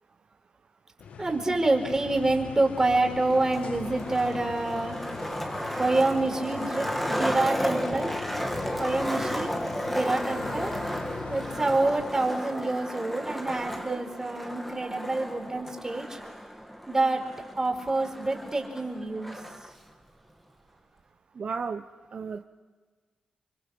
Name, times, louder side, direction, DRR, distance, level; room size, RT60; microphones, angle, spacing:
sound 1, 1.0-12.3, left 7 dB, 80° left, 1.3 m, -41 dB
voice 1, 1.2-5.0 5.8-8.1 8.8-9.5 9.9-10.7 11.3-16.2 16.9-17.2 17.6-19.4, right 2 dB, 25° right, 4 dB, 4.6 m, -27 dB
Skateboard, 2.7-19.7, equal, 5° left, 2.4 m, -34 dB
voice 2, 21.4-21.8 22.1-22.4, right 5 dB, 60° right, 7 dB, 0.9 m, -33 dB
29.0 x 24.0 x 6.2 m, 1.4 s
cardioid pair, 75°, 2 cm